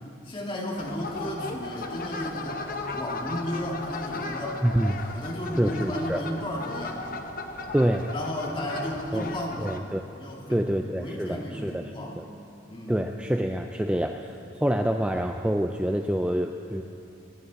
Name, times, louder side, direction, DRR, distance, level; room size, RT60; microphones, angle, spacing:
voice 1, 0.2-2.6 2.9-4.6 5.1-7.0 8.1-9.8 10.2-10.7 11.0-12.2 12.7-13.0, left 1 dB, 25° left, -3 dB, 2.4 m, -33 dB
sound 1, 0.8-9.8, left 3 dB, 45° left, 0.9 m, -36 dB
voice 2, 4.6-5.0 5.6-6.2 7.7-8.1 9.1-9.3 9.6-10.0 10.5-12.2 12.9-16.8, right 1 dB, 5° right, 4 dB, 0.4 m, -26 dB
24.5 x 11.0 x 4.1 m, 2.8 s
head